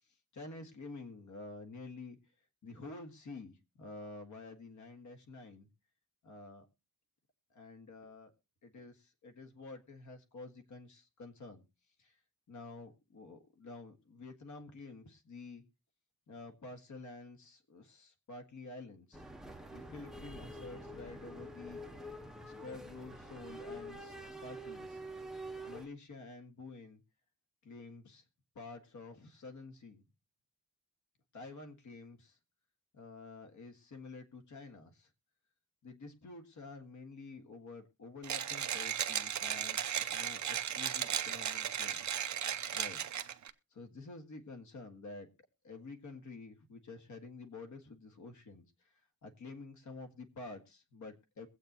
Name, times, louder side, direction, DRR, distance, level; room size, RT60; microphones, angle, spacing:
voice 1, 0.3-2.2 2.6-5.7 6.2-6.6 7.5-8.3 8.6-11.6 12.0-12.1 12.5-15.6 16.3-19.3 19.7-21.8 22.4-24.2 24.4-25.0 25.7-27.0 27.6-28.2 28.5-30.0 31.3-32.4 32.9-35.1 35.8-39.8 40.1-42.2 42.7-43.2 43.7-45.3 45.6-48.6 49.2-51.5, left 3 dB, 55° left, 5 dB, 1.8 m, -49 dB
sound 1, 19.1-25.9, right 1 dB, ahead, 0.8 m, -47 dB
Mechanisms, 38.2-43.5, right 9 dB, 50° right, 0.7 m, -36 dB
22.5 x 8.1 x 2.9 m, 0.27 s
wide cardioid pair, 165°, 36 cm